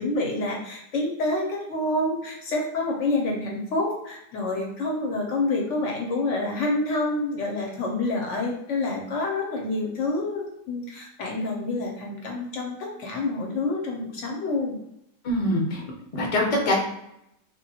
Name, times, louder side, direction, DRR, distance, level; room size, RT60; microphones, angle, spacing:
voice 1, 0.0-14.8, left 2 dB, 65° left, 0 dB, 0.8 m, -28 dB
voice 2, 15.2-15.8 16.1-16.8, left 1 dB, 40° left, -1 dB, 0.5 m, -23 dB
3.4 x 2.1 x 2.7 m, 0.80 s
omnidirectional pair, 1.5 m